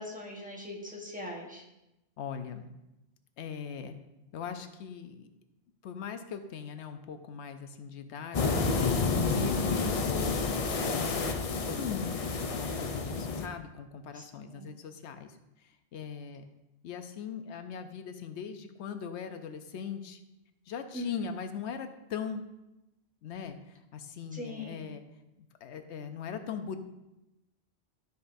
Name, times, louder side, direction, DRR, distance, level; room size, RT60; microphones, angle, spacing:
voice 1, 0.0-1.6 14.1-14.7 20.9-21.3 24.3-24.9, left 1 dB, 10° right, -2 dB, 1.2 m, -41 dB
voice 2, 2.2-2.7 3.4-3.9 4.3-5.3 5.8-10.4 10.9-16.4 16.8-20.2 20.7-22.5 23.2-25.0 25.6-26.8, left 7 dB, 90° left, 8 dB, 0.9 m, -40 dB
sound 1, 8.3-13.5, left 4 dB, 45° left, 0.5 m, -29 dB
12.5 x 5.3 x 2.6 m, 0.93 s
omnidirectional pair, 1.1 m